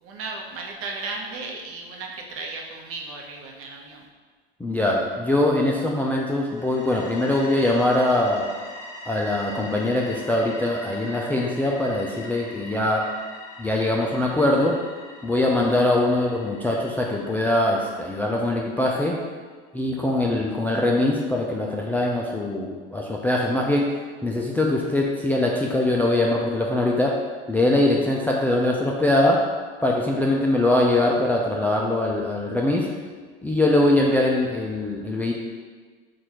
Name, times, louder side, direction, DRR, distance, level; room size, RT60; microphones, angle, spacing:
voice 1, 0.0-4.0, right 3 dB, 50° right, 0 dB, 0.9 m, -35 dB
voice 2, 4.6-8.5 9.1-13.1 13.6-14.8 15.2-19.2 19.7-23.9 24.2-27.2 27.5-29.4 29.8-32.9 33.4-35.3, left 1 dB, 5° left, -2 dB, 0.3 m, -22 dB
sound 1, 6.5-19.2, left 1 dB, 35° left, 1.1 m, -43 dB
4.2 x 2.6 x 4.6 m, 1.5 s
hypercardioid pair, 85°, 30 cm